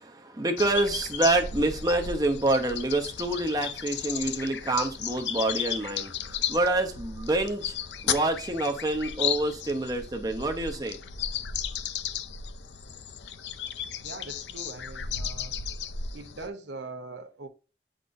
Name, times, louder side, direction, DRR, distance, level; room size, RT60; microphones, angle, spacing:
voice 1, 0.0-11.0, right 2 dB, 20° right, 0.7 m, -27 dB
sound 1, 0.6-16.5, left 8 dB, 85° left, 0.6 m, -34 dB
voice 2, 14.0-15.6 16.1-17.5, right 3 dB, 85° right, 0.8 m, -41 dB
9.5 x 3.9 x 2.6 m
head